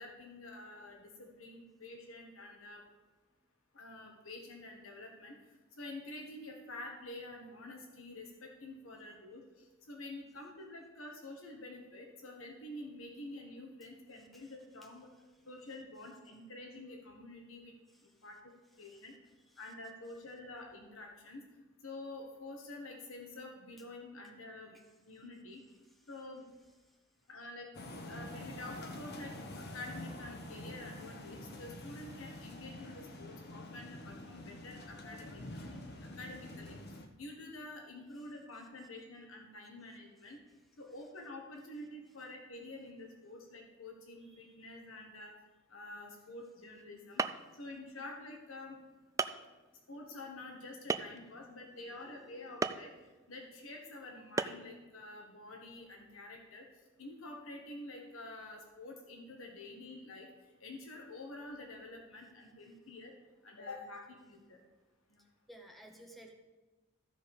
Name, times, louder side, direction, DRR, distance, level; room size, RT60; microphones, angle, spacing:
voice 1, 0.0-2.8 3.7-5.3 5.8-9.4 9.9-15.1 15.4-17.7 18.2-19.1 19.6-21.4 21.8-24.8 25.1-25.6 26.1-26.5 27.3-27.7 28.1-35.6 36.1-36.7 37.2-40.4 40.8-45.3 45.7-47.2 47.6-48.8 49.9-52.9 53.3-56.7 57.0-60.3 60.6-63.1 63.4-64.6 65.1-65.2, left 2 dB, 90° left, 1 dB, 1.5 m, -48 dB
sound 1, 27.7-37.1, left 1 dB, 55° left, 1.1 m, -47 dB
voice 2, 44.4-44.7 51.5-52.3 65.5-66.3, right 1 dB, ahead, 2 dB, 0.8 m, -57 dB
sound 2, 46.8-46.9 47.2-47.6 48.4-48.5 49.2-49.5 50.9-51.3 52.6-52.9 54.4-54.7, right 4 dB, 15° right, 0.3 m, -33 dB
14.0 x 5.1 x 5.4 m, 1.2 s
head